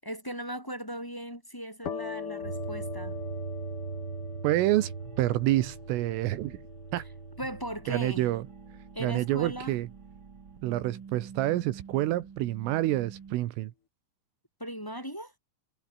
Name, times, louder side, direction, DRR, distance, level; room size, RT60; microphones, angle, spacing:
voice 1, 0.0-3.2 7.4-8.3 8.9-9.7 14.6-15.3, equal, 5° left, 7.0 m, -38 dB
sound 1, 1.8-9.3, left 7 dB, 50° left, 1.6 m, -43 dB
sound 2, 2.4-13.3, right 6 dB, 55° right, 1.4 m, -42 dB
voice 2, 4.4-4.9 5.2-6.6 6.9-7.0 7.9-8.5 9.0-9.9 10.6-13.7, right 15 dB, 80° right, 3.8 m, -27 dB
omnidirectional pair, 5.9 m